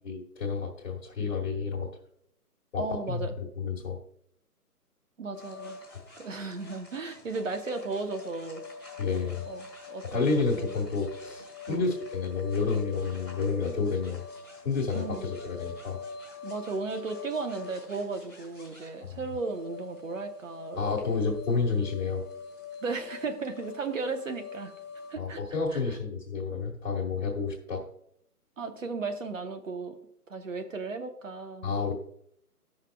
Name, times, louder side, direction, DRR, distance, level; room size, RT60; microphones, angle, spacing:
voice 1, 0.0-1.9 2.7-3.3 3.6-4.0 9.0-9.4 10.0-14.2 14.6-16.0 19.1-19.2 20.7-22.2 25.2-27.8 31.6-31.9, left 4 dB, 40° left, -3 dB, 1.5 m, -30 dB
voice 2, 2.8-3.3 5.2-5.8 6.2-8.6 9.5-10.7 11.7-11.9 14.9-15.3 16.4-21.1 22.8-24.7 25.1-25.4 25.7-25.8 28.6-30.0 30.3-31.8, right 4 dB, 55° right, 7 dB, 1.0 m, -35 dB
sound 1, 5.3-25.1, left 4 dB, 10° right, 1.2 m, -45 dB
14.5 x 5.8 x 2.3 m, 0.70 s
hypercardioid pair, 170°, 47 cm